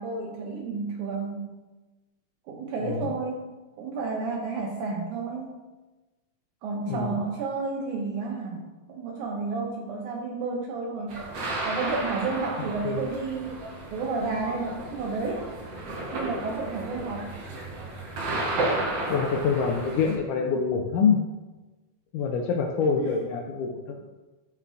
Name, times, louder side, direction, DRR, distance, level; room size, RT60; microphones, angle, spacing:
voice 1, 0.0-1.6 2.5-3.5 3.8-5.5 6.6-11.3 11.6-13.6 13.9-15.5 16.1-17.3 23.0-23.1, right 4 dB, 75° right, 0 dB, 1.8 m, -31 dB
voice 2, 6.9-7.2 12.8-13.1 19.1-21.2 22.1-24.0, left 5 dB, 80° left, 2 dB, 1.8 m, -26 dB
sound 1, 11.1-20.2, right 2 dB, 60° right, 1.8 m, -33 dB
12.5 x 4.5 x 2.5 m, 1.2 s
omnidirectional pair, 4.1 m